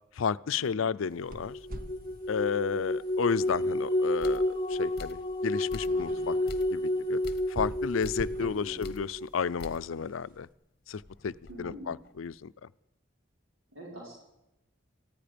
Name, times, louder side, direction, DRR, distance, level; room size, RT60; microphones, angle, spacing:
voice 1, 0.1-1.6 2.3-6.4 6.7-7.2 7.5-10.5 10.9-12.5, left 6 dB, 80° left, 16 dB, 0.5 m, -32 dB
sound 1, 1.0-10.4, right 1 dB, 45° right, 1.0 m, -47 dB
sound 2, 1.4-9.3, left 1 dB, 20° left, 1.0 m, -31 dB
sound 3, 3.5-3.6 4.2-4.5 5.0-5.3 5.7-6.1 6.5-6.8 7.2-7.5 8.0-8.3 8.8-9.1 9.6-9.9 10.3-10.4 10.9-12.4, left 2 dB, 50° left, 0.9 m, -45 dB
voice 2, 8.4-8.8 11.5-12.0 13.7-14.2, equal, 75° right, -3 dB, 4.9 m, -45 dB
19.0 x 15.0 x 5.2 m, 0.90 s
head